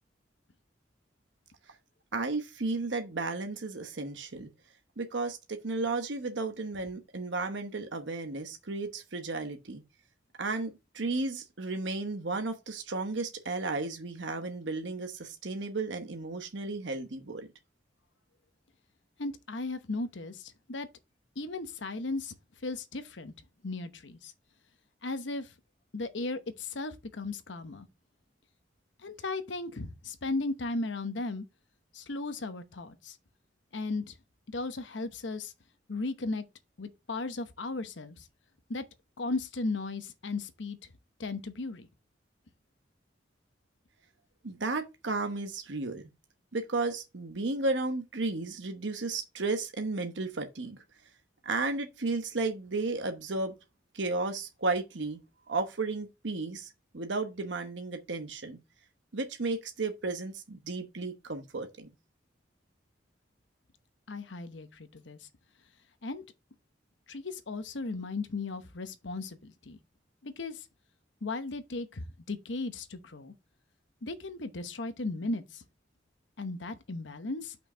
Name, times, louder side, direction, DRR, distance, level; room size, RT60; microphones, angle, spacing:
voice 1, 2.1-4.5 5.0-9.8 10.4-17.5 44.4-46.0 46.5-50.8 51.4-53.5 53.9-55.2 55.5-58.6 59.1-61.9, right 3 dB, 80° right, 1.0 m, -33 dB
voice 2, 19.2-20.9 21.4-22.3 22.6-23.3 23.6-24.3 25.0-25.5 25.9-27.9 29.0-31.4 31.9-33.2 33.7-34.1 34.5-35.5 35.9-36.4 36.8-38.2 38.7-38.8 39.2-40.8 41.2-41.9 64.1-65.2 66.0-66.2 67.1-69.8 70.2-70.7 71.2-73.3 74.0-75.6 76.4-77.6, left 3 dB, 85° left, 0.9 m, -36 dB
5.8 x 4.6 x 6.2 m
head